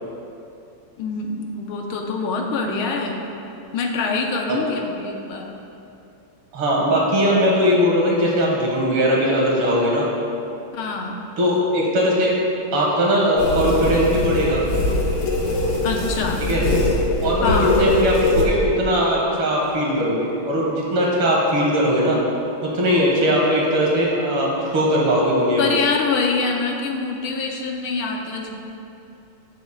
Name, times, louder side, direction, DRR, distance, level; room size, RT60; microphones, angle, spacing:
voice 1, 1.0-3.2 3.7-5.5 10.7-11.2 15.8-16.4 17.4-17.8 25.6-28.5, left 4 dB, 75° left, 1 dB, 1.6 m, -25 dB
voice 2, 6.5-10.2 11.4-12.4 12.7-14.6 16.5-16.6 17.2-22.2 22.6-25.8, equal, 75° right, -3 dB, 2.4 m, -19 dB
sound 1, 13.4-18.4, left 2 dB, 55° left, 1.8 m, -22 dB
16.5 x 7.0 x 2.2 m, 2.7 s
omnidirectional pair, 2.4 m